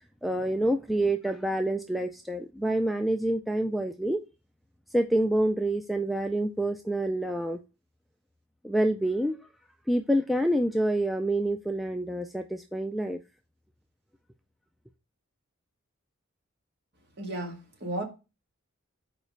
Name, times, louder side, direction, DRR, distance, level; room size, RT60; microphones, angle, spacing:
voice 1, 0.2-4.2 4.9-7.6 8.6-9.4 9.9-13.2, right 1 dB, ahead, 0.3 m, -27 dB
voice 2, 17.2-18.0, right 1 dB, 50° right, 2.0 m, -34 dB
5.1 x 4.8 x 5.3 m
head